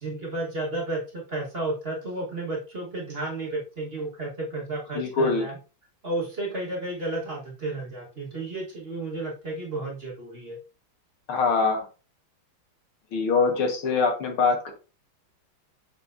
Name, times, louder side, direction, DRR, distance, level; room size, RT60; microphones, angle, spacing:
voice 1, 0.0-5.5 6.0-10.6, right 2 dB, 30° right, -2 dB, 1.5 m, -32 dB
voice 2, 4.9-5.4 11.3-11.8 13.1-14.7, left 4 dB, 85° left, 3 dB, 2.4 m, -23 dB
7.1 x 5.6 x 2.6 m, 0.32 s
omnidirectional pair, 2.3 m